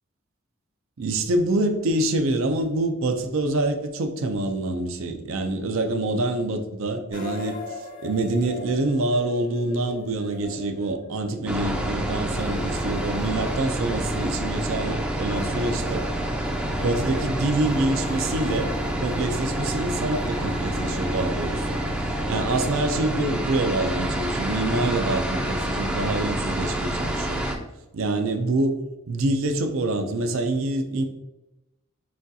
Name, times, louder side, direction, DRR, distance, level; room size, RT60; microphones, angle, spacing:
voice 1, 1.0-16.1 16.5-18.7 19.0-21.6 22.3-27.4 27.9-28.8 29.1-31.0, right 2 dB, 75° right, 6 dB, 0.5 m, -26 dB
sound 1, 7.1-26.2, left 2 dB, 40° left, 0.7 m, -41 dB
sound 2, 11.5-27.5, right 1 dB, 5° right, 0.4 m, -28 dB
6.1 x 2.3 x 2.7 m, 0.98 s
head